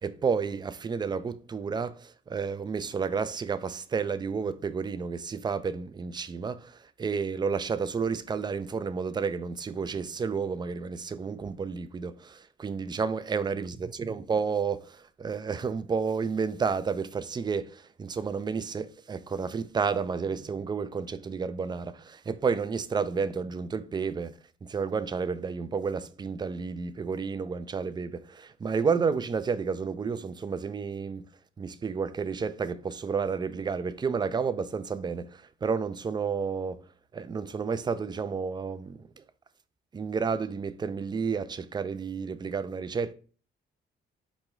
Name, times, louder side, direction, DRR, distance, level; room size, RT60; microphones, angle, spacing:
voice 1, 0.0-31.2 31.6-36.8 37.1-39.2 39.9-43.1, right 5 dB, 20° right, 0.3 m, -31 dB
4.3 x 3.1 x 3.6 m
cardioid pair, 90°, 20 cm